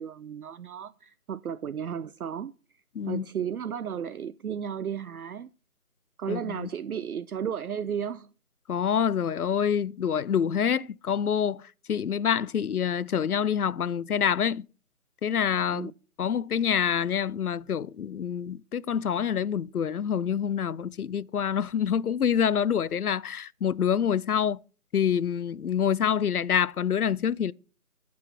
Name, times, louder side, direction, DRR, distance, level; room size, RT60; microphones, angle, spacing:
voice 1, 0.0-5.5 6.2-8.3 15.7-15.9, right 8 dB, 75° right, 0.5 m, -34 dB
voice 2, 6.3-6.7 8.7-11.6 11.9-14.7 15.2-15.9 16.2-24.6 24.9-27.5, left 8 dB, 75° left, 0.5 m, -26 dB
11.0 x 6.2 x 5.8 m
figure-of-eight pair, 175°, 45 cm